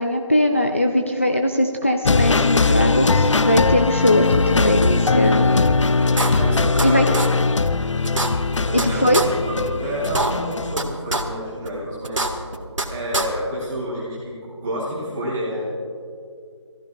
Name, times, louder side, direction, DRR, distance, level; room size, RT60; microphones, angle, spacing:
voice 1, 0.0-5.5 6.8-7.1 8.7-9.2, left 1 dB, 25° left, 4 dB, 0.4 m, -20 dB
sound 1, 2.0-10.8, left 3 dB, 75° left, 0.5 m, -20 dB
sound 2, 5.6-5.7 6.1-6.9 7.1-7.3 7.6-7.7 8.0-8.8 9.1-9.2 9.6-9.7 10.0-10.8 11.1-11.2 11.6-11.7 12.0-12.8 13.1-13.2, right 2 dB, 85° right, 1.8 m, -23 dB
voice 2, 6.3-7.1 8.6-12.3 12.9-15.7, equal, 5° right, -8 dB, 0.8 m, -29 dB
28.5 x 14.5 x 2.4 m, 2.3 s
figure-of-eight pair, 175°, 16 cm